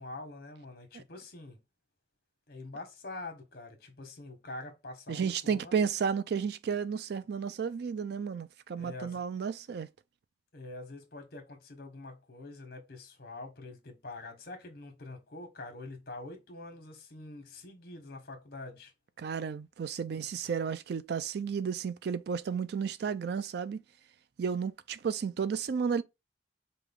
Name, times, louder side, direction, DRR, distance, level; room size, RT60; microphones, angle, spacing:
voice 1, 0.0-1.6 2.5-5.8 8.8-9.2 10.5-18.9, left 2 dB, 60° left, 1.4 m, -45 dB
voice 2, 5.1-9.9 19.2-23.8 24.4-26.0, right 6 dB, 65° right, 0.4 m, -32 dB
4.9 x 2.4 x 3.5 m
head